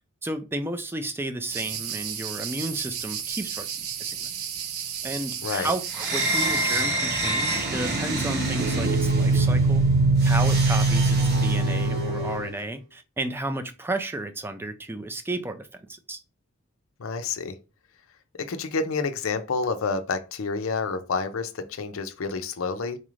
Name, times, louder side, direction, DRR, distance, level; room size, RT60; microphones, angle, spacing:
voice 1, 0.2-4.3 5.0-9.8 10.3-16.2, right 2 dB, 10° right, 0.3 m, -33 dB
sound 1, 1.5-6.8, right 8 dB, 85° right, 0.6 m, -33 dB
sound 2, 5.9-12.5, right 2 dB, 50° right, 1.0 m, -22 dB
voice 2, 17.0-17.6 18.4-23.0, left 4 dB, 70° left, 0.5 m, -29 dB
4.0 x 2.4 x 3.1 m
head